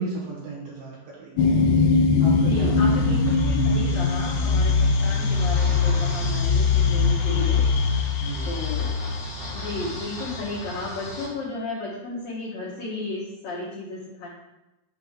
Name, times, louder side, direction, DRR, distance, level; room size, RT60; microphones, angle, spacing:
voice 1, 0.0-1.5 2.2-3.0 5.1-5.3 8.2-8.5, right 4 dB, 75° right, -3 dB, 2.7 m, -35 dB
sound 1, 1.4-10.0, left 4 dB, 90° left, 2.1 m, -21 dB
voice 2, 2.4-7.6 8.4-9.0 9.5-14.3, left 2 dB, 70° left, -7 dB, 1.7 m, -33 dB
sound 2, 2.5-11.3, left 1 dB, 50° left, 2.2 m, -37 dB
6.9 x 3.2 x 5.6 m, 0.99 s
omnidirectional pair, 4.8 m